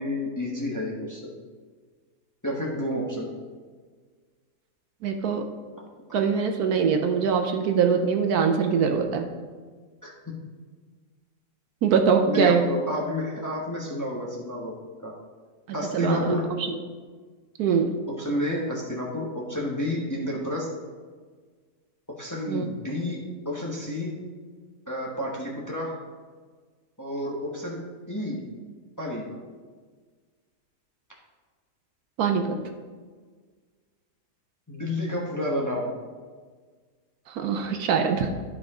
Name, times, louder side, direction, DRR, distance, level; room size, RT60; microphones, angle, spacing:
voice 1, 0.0-1.3 2.4-3.3 10.0-10.1 12.3-14.7 15.0-15.2 15.7-16.5 18.2-20.7 22.2-23.2 23.4-24.1 24.9-26.0 27.0-28.4 29.0-29.2 34.7-35.9, left 1 dB, 15° left, -3 dB, 0.9 m, -30 dB
voice 2, 5.0-5.4 6.1-9.3 11.8-12.7 15.9-16.3 17.6-18.0 22.5-22.7 32.2-32.5 37.3-38.3, right 6 dB, 75° right, 5 dB, 1.1 m, -23 dB
11.5 x 4.8 x 3.6 m, 1.5 s
omnidirectional pair, 1.7 m